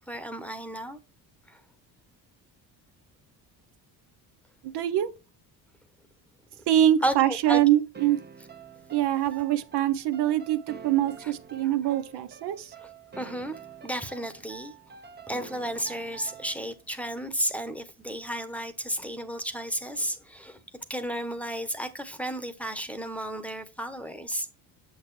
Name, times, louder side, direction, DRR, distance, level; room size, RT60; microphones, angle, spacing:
voice 1, 0.1-1.0 1.5-1.6 7.0-7.6 11.2-11.3 12.8-13.5 13.8-14.7 15.3-20.6 20.9-24.5, right 1 dB, 5° left, 1.0 m, -33 dB
voice 2, 4.6-5.1 6.7-8.2 8.9-12.7, right 12 dB, 70° right, 0.9 m, -24 dB
sound 1, 7.9-16.8, right 6 dB, 25° right, 0.7 m, -47 dB
7.2 x 6.4 x 3.2 m
cardioid pair, 105°, 41 cm